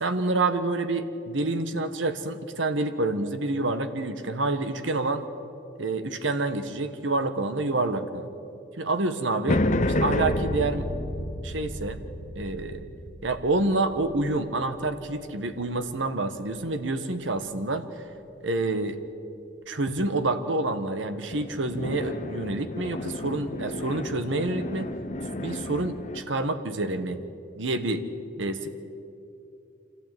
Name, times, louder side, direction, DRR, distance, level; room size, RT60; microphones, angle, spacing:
voice 1, 0.0-5.2 5.8-8.3 8.8-10.9 11.2-12.0 12.3-12.9 13.2-18.0 18.4-19.0 19.7-24.9 25.4-27.2 27.6-28.0 28.4-28.7, right 2 dB, 80° right, 9 dB, 1.4 m, -28 dB
sound 1, 9.5-16.0 21.3-26.2, left 1 dB, 40° left, 0.9 m, -31 dB
25.5 x 15.5 x 9.2 m, 2.7 s
head